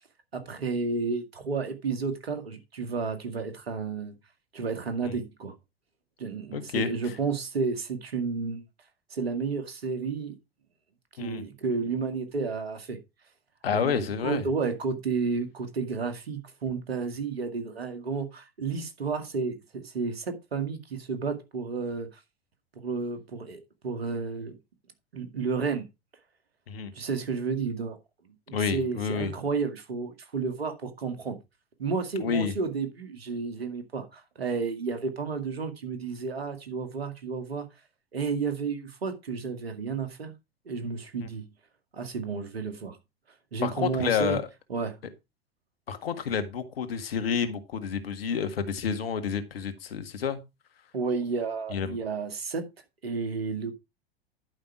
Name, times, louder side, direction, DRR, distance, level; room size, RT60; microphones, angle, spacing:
voice 1, 0.3-4.1 4.5-5.5 6.2-8.6 9.1-10.4 11.2-13.0 13.7-22.2 22.8-24.6 25.1-25.9 26.9-28.0 28.5-31.4 31.8-37.7 38.1-40.3 40.7-41.4 41.9-43.0 43.5-44.4 44.7-45.0 50.9-52.7 53.0-53.7, right 4 dB, 85° right, 2.2 m, -31 dB
voice 2, 6.5-7.1 11.2-11.4 13.6-14.4 26.7-26.9 28.5-29.3 32.2-32.5 41.2-41.3 43.6-44.4 45.9-50.4 51.7-52.0, left 7 dB, 75° left, 1.8 m, -29 dB
11.0 x 5.5 x 4.8 m
hypercardioid pair, 95°, 30 cm